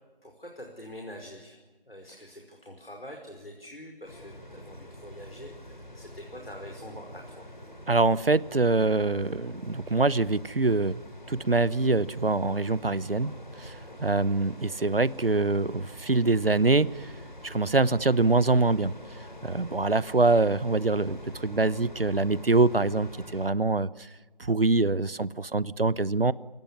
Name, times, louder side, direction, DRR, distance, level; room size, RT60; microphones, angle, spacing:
voice 1, 0.2-1.6 1.9-7.5 13.9-14.1 19.7-19.9, equal, 80° left, 2 dB, 5.2 m, -45 dB
sound 1, 4.0-23.5, equal, 55° left, 4.1 m, -45 dB
voice 2, 7.9-11.0 11.3-13.3 13.6-17.1 17.4-19.0 19.4-24.1 24.4-26.3, right 3 dB, 75° right, 19 dB, 1.0 m, -24 dB
29.0 x 18.5 x 9.9 m, 1.2 s
figure-of-eight pair, 175°, 29 cm